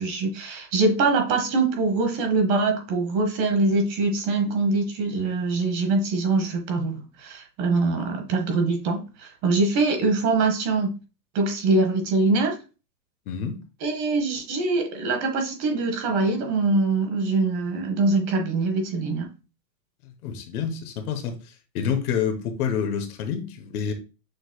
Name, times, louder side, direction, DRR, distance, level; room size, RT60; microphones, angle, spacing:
voice 1, 0.0-10.9 11.3-12.5 13.8-19.3, right 3 dB, 40° right, 1.2 m, -23 dB
voice 2, 13.3-13.6 20.2-21.4 21.7-23.9, left 7 dB, 60° left, 1.1 m, -27 dB
6.3 x 3.0 x 2.2 m
supercardioid pair, 140°, 49 cm